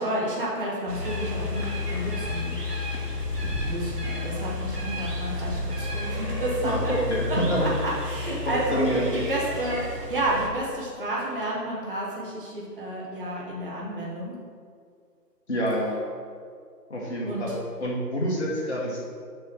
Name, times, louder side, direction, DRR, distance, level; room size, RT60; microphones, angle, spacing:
voice 1, 0.0-2.5 3.6-6.9 7.3-8.9 9.1-14.3 17.2-17.4, right 1 dB, 35° right, -5 dB, 1.0 m, -31 dB
sound 1, 0.9-10.5, left 2 dB, 70° right, 1.4 m, -31 dB
voice 2, 6.6-7.7 8.4-9.1 15.5-16.0 16.9-19.0, equal, 40° left, -3 dB, 1.0 m, -27 dB
6.5 x 3.0 x 5.8 m, 2.1 s
figure-of-eight pair, 150°, 49 cm